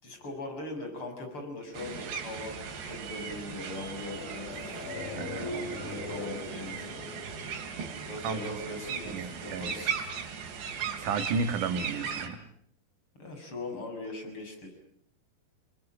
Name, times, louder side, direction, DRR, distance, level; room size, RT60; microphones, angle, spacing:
voice 1, 0.0-4.5 5.5-6.8 8.0-10.0 13.2-14.7, left 2 dB, 30° left, 5 dB, 7.2 m, -40 dB
sound 1, 1.7-12.3, right 6 dB, 80° right, 5.0 m, -38 dB
sound 2, 3.8-8.4 8.6-8.7, left 2 dB, 60° left, 4.0 m, -41 dB
voice 2, 5.2-5.5 8.2-8.4 9.0-9.7 11.0-12.4, right 4 dB, 55° right, 8 dB, 3.1 m, -32 dB
29.5 x 22.0 x 8.9 m, 0.68 s
omnidirectional pair, 4.9 m